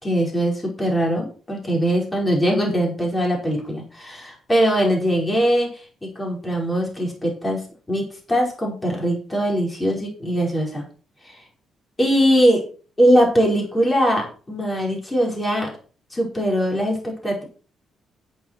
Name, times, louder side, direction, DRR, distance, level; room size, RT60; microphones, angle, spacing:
voice 1, 0.0-5.7 6.0-7.6 7.9-10.8 11.2-11.4 12.0-12.6 13.0-15.7 16.1-17.4, equal, 15° left, -1 dB, 4.9 m, -21 dB
9.8 x 8.7 x 4.5 m, 0.39 s
cardioid pair, 90°, 0 cm